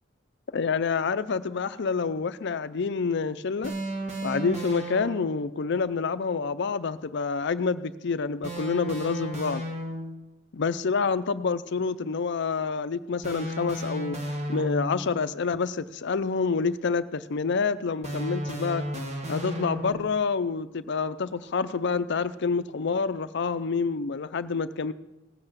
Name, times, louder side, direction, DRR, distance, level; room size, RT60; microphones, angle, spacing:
voice 1, 0.5-3.7 4.2-9.6 10.5-14.2 14.5-18.8 19.3-24.9, left 5 dB, 60° left, 13 dB, 0.5 m, -28 dB
sound 1, 3.6-5.5 8.4-10.3 13.2-15.2 18.0-20.2, right 1 dB, 35° right, 1.5 m, -34 dB
17.0 x 7.8 x 7.3 m, 0.99 s
head